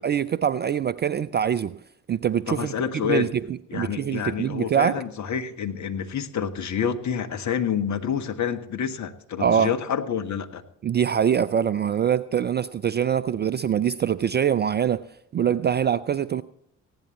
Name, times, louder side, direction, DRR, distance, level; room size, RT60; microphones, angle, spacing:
voice 1, 0.0-1.8 2.1-2.7 3.0-5.0 9.4-9.7 10.8-15.0 15.3-16.4, right 8 dB, 25° right, 0.4 m, -24 dB
voice 2, 2.5-3.3 3.7-10.6, left 8 dB, 40° left, 1.5 m, -28 dB
19.5 x 16.0 x 3.1 m
figure-of-eight pair, 45°, 43 cm